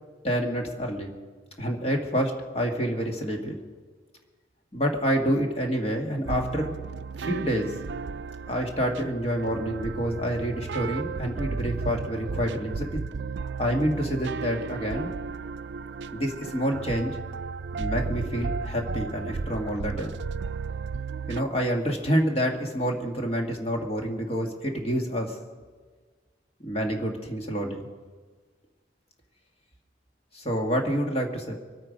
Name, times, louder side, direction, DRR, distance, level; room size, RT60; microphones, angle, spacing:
voice 1, 0.2-1.1 1.6-3.5 4.7-6.7 7.2-7.7 8.5-13.0 13.6-15.1 16.1-17.2 17.8-20.1 21.3-25.4 26.6-27.9 30.3-31.5, equal, 35° left, 2 dB, 1.7 m, -28 dB
sound 1, 6.3-21.4, right 4 dB, 70° right, 0.4 m, -34 dB
24.0 x 9.0 x 5.2 m, 1.5 s
head